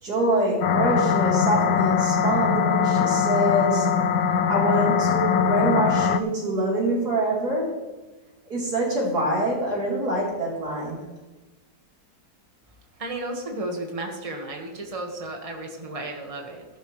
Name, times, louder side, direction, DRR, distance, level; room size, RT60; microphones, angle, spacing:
voice 1, 0.0-3.9 4.5-7.7 8.5-11.0, right 1 dB, 55° right, -4 dB, 4.4 m, -25 dB
sound 1, 0.6-6.2, left 7 dB, 70° left, 0.9 m, -22 dB
voice 2, 13.0-16.7, right 2 dB, 20° right, 2 dB, 1.7 m, -33 dB
14.5 x 12.0 x 3.3 m, 1.2 s
omnidirectional pair, 2.0 m